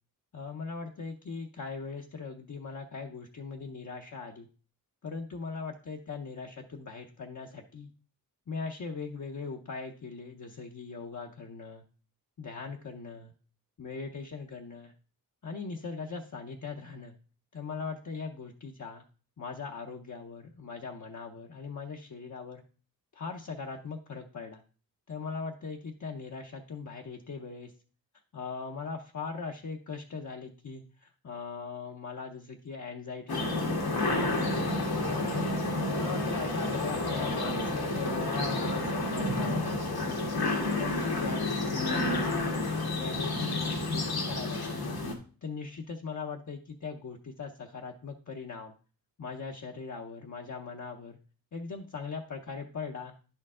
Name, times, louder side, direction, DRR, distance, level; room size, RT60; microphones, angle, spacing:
voice 1, 0.3-4.5 5.0-7.9 8.5-11.8 12.4-13.3 13.8-14.9 15.4-17.1 17.5-19.0 19.4-22.6 23.1-24.6 25.1-27.7 28.3-35.5 36.0-40.2 40.8-45.0 45.4-48.7 49.2-51.2 51.5-53.1, left 4 dB, 55° left, 1 dB, 0.7 m, -40 dB
sound 1, 33.3-45.1, left 2 dB, 85° left, 1.5 m, -30 dB
10.5 x 4.5 x 3.6 m, 0.39 s
wide cardioid pair, 80°, 36 cm